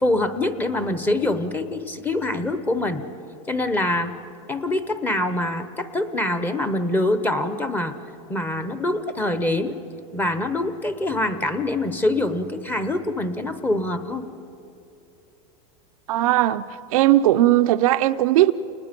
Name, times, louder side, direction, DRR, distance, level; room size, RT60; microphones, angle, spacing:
voice 1, 0.0-3.0 3.5-4.1 4.5-7.9 8.3-9.7 10.1-14.2, left 1 dB, 10° left, 10 dB, 1.0 m, -24 dB
voice 2, 16.1-16.7 16.9-18.5, right 14 dB, 85° right, 10 dB, 0.6 m, -18 dB
29.5 x 20.0 x 5.2 m, 2.7 s
supercardioid pair, 145°, 18 cm